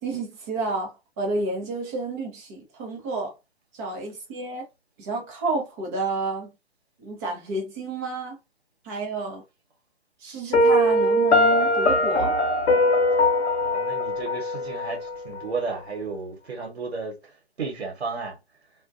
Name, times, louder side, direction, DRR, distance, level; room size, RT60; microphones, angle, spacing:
voice 1, 0.0-3.4 3.7-4.7 5.0-6.5 7.0-8.4 8.8-9.4 10.2-12.4, right 3 dB, 15° right, 0.5 m, -30 dB
Piano, 10.5-15.5, left 1 dB, 85° left, 0.6 m, -21 dB
voice 2, 13.6-17.3 17.6-18.4, right 4 dB, 70° right, 1.2 m, -33 dB
2.3 x 2.2 x 2.5 m
figure-of-eight pair, 135°, 33 cm